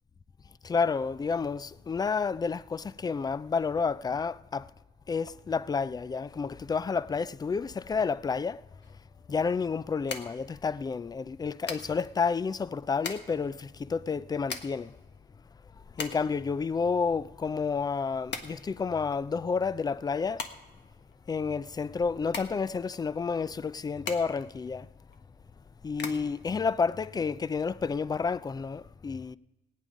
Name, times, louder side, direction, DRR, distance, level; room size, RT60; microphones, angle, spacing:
voice 1, 0.6-4.7 5.1-8.6 9.3-14.9 16.0-20.5 21.3-24.9 25.8-29.4, left 5 dB, 20° left, 0.3 m, -30 dB
sound 1, 8.8-27.7, left 5 dB, 60° left, 1.5 m, -44 dB
18.5 x 9.2 x 5.1 m
cardioid pair, 90°, 20 cm